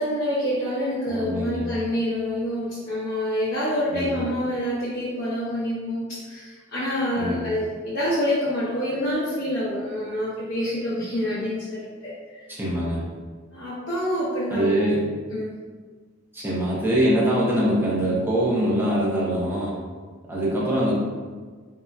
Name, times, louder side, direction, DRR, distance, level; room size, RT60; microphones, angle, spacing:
voice 1, 0.0-12.5 13.5-14.9 15.3-15.5 16.4-16.5, equal, 60° left, -11 dB, 0.8 m, -27 dB
voice 2, 1.0-1.7 3.9-4.2 7.2-7.4 12.5-13.0 14.5-15.1 16.3-19.8 20.3-20.9, equal, 10° right, -6 dB, 0.6 m, -23 dB
3.9 x 2.1 x 2.2 m, 1.5 s
head